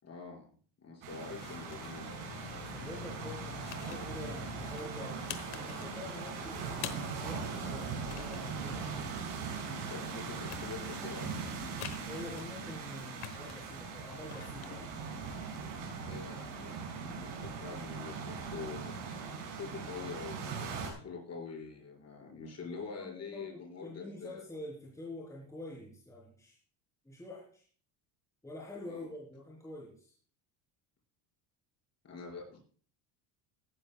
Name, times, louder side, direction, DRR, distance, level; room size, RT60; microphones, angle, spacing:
voice 1, 0.0-2.1 9.7-11.4 16.0-19.0 19.5-24.4 28.9-29.1 32.0-32.6, left 5 dB, 30° left, -1 dB, 5.6 m, -45 dB
sound 1, 1.0-20.9, right 5 dB, 70° right, 6.1 m, -40 dB
sound 2, 1.2-16.5, left 11 dB, 50° left, 1.3 m, -49 dB
Ringtone, 2.1-8.9, right 6 dB, 55° right, 4.3 m, -56 dB
voice 2, 2.7-8.9 12.1-14.9 22.9-26.6 27.1-27.6 28.4-30.1, left 1 dB, 5° left, -4 dB, 3.7 m, -46 dB
16.5 x 12.5 x 2.3 m, 0.43 s
cardioid pair, 120°, 48 cm